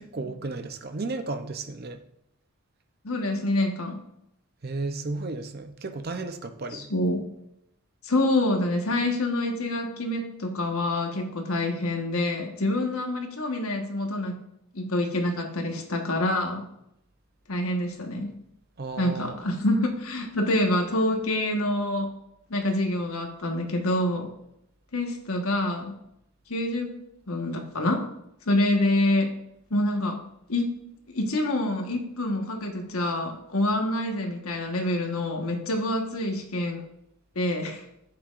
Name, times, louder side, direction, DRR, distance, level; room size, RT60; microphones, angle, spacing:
voice 1, 0.0-2.0 4.6-6.9 15.8-15.9 18.8-19.4, right 3 dB, 45° right, 0.6 m, -34 dB
voice 2, 3.0-4.0 6.7-7.2 8.0-14.4 14.7-16.6 17.5-18.3 19.0-22.1 22.5-24.3 24.9-25.9 26.5-27.0 27.3-28.0 28.5-29.3 29.7-30.2 30.5-30.8 31.1-36.8 37.3-37.8, left 1 dB, 75° left, 1.4 m, -26 dB
10.0 x 7.8 x 2.5 m
head